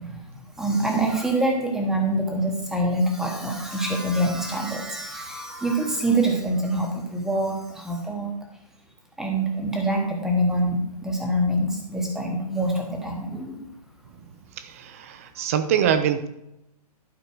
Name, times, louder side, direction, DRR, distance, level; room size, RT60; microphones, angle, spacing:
voice 1, 0.0-8.3 9.2-13.7, right 1 dB, ahead, 1 dB, 1.0 m, -25 dB
voice 2, 14.6-16.3, right 8 dB, 20° right, 11 dB, 0.5 m, -24 dB
11.5 x 5.2 x 4.5 m, 0.85 s
hypercardioid pair, 160°, 20 cm